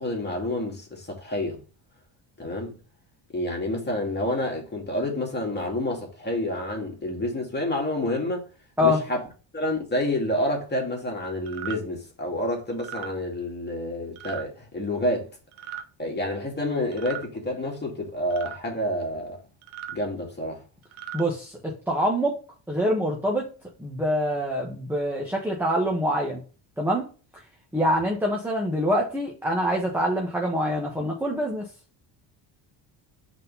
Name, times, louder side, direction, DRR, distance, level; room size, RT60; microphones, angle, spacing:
voice 1, 0.0-1.6 2.4-2.8 3.3-8.5 8.8-9.2 9.5-15.3 16.0-19.4 19.9-20.6, left 1 dB, 20° left, 2.5 m, -28 dB
sound 1, 11.5-11.8 12.7-13.1 14.2-14.4 15.5-15.9 16.9-17.3 18.3-18.6 19.6-20.0 20.8-21.2, right 10 dB, 75° right, 1.1 m, -37 dB
voice 2, 21.1-22.4 22.7-23.5 23.8-26.4 26.8-27.1 27.7-31.7, equal, 5° right, 1.4 m, -25 dB
5.3 x 4.1 x 5.6 m
cardioid pair, 105°, 48 cm